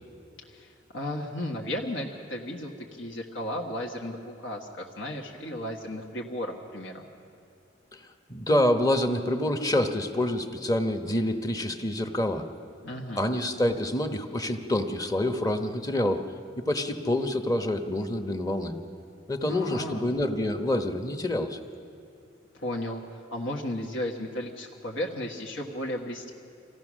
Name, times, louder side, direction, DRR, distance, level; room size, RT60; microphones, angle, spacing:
voice 1, 0.5-7.0 12.8-13.2 19.5-20.0 22.5-23.0 23.3-26.3, left 1 dB, 70° left, 0 dB, 1.5 m, -34 dB
voice 2, 8.3-12.4 13.2-16.2 16.6-18.7 19.3-21.6, left 1 dB, 20° left, 6 dB, 1.0 m, -27 dB
26.0 x 16.0 x 6.3 m, 2.5 s
head